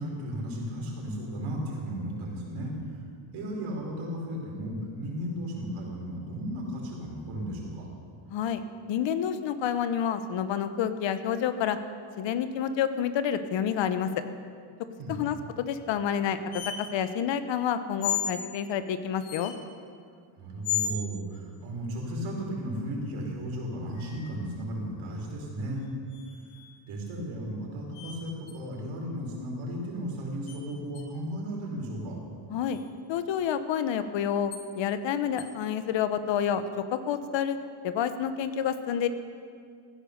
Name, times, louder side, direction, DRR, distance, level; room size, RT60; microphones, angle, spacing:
voice 1, 0.0-3.0 3.3-7.9 15.0-15.3 20.4-25.9 26.9-32.2, equal, 75° right, -2 dB, 4.8 m, -35 dB
voice 2, 8.3-8.6 8.9-11.8 12.2-14.1 15.1-19.5 32.5-32.8 33.1-37.6 37.8-39.1, left 8 dB, 65° left, 11 dB, 1.1 m, -29 dB
sound 1, 16.5-16.8 18.0-18.4 19.2-19.5 20.6-21.0 24.0-24.5 26.1-26.8 27.9-28.2 28.5-28.6 30.5-30.6 30.9-31.0 32.7-32.9 34.5-34.6 35.4-35.5, left 8 dB, 85° left, 2.1 m, -33 dB
15.5 x 10.5 x 6.7 m, 2.2 s
cardioid pair, 115°, 49 cm